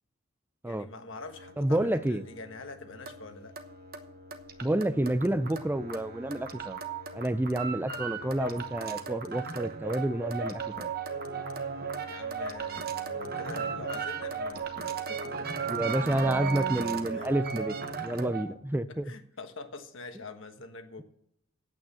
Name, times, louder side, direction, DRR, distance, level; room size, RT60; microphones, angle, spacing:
voice 1, 0.6-3.6 12.1-15.5 17.1-17.3 18.9-21.0, left 3 dB, 60° left, 1.4 m, -45 dB
sound 1, 1.2-18.5, right 5 dB, 45° right, 1.1 m, -36 dB
voice 2, 1.6-2.2 4.6-6.8 7.1-10.9 15.7-17.8 18.0-19.1, right 1 dB, 10° right, 0.4 m, -29 dB
9.0 x 8.6 x 7.1 m
head